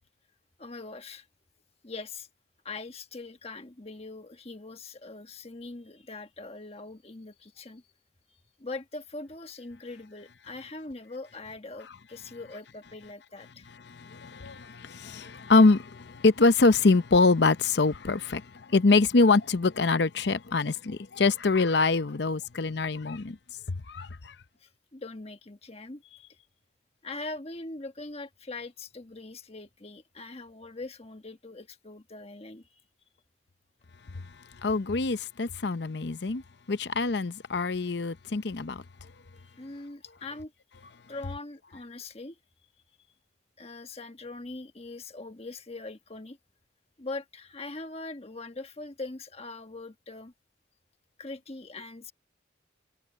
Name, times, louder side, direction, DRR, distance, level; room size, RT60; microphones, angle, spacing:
voice 1, 0.6-1.3 1.8-2.3 2.6-7.8 8.6-13.7 24.6-26.4 27.0-32.7 39.6-40.5 41.1-42.3 43.6-46.4 47.0-50.3 51.2-52.1, left 3 dB, 30° left, 1.4 m, -42 dB
voice 2, 13.9-23.4 23.7-24.1 34.6-36.4 36.7-38.8, left 3 dB, 60° left, 0.7 m, -24 dB
head